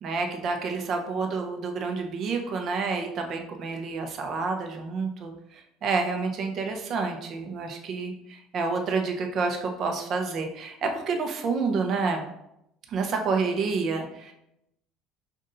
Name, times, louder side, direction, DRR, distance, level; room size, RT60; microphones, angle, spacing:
voice 1, 0.0-12.2 12.9-14.3, right 4 dB, 40° right, 3 dB, 0.7 m, -29 dB
5.4 x 2.6 x 3.8 m, 0.82 s
cardioid pair, 155°, 0 cm